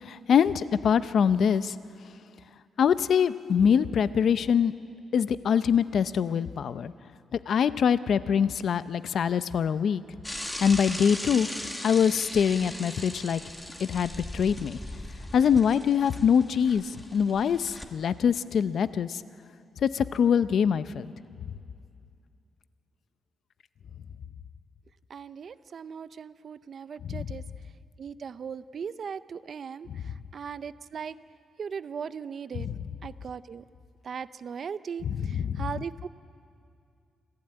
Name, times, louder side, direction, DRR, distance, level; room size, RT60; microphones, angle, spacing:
voice 1, 0.0-1.8 2.8-4.7 5.1-6.9 7.3-10.0 10.6-11.5 11.8-13.4 13.8-14.8 15.3-19.2 19.8-21.1 27.0-27.3 29.9-30.0 32.5-32.8 35.1-35.7, left 7 dB, 60° left, 14 dB, 0.6 m, -24 dB
Bicycle / Mechanisms, 10.2-17.9, left 1 dB, 10° left, 1.6 m, -39 dB
voice 2, 25.1-27.4 28.0-31.2 31.6-32.7 33.0-33.6 34.0-36.1, right 6 dB, 50° right, 15 dB, 0.5 m, -38 dB
26.0 x 15.5 x 8.8 m, 2.4 s
cardioid pair, 140°, 0 cm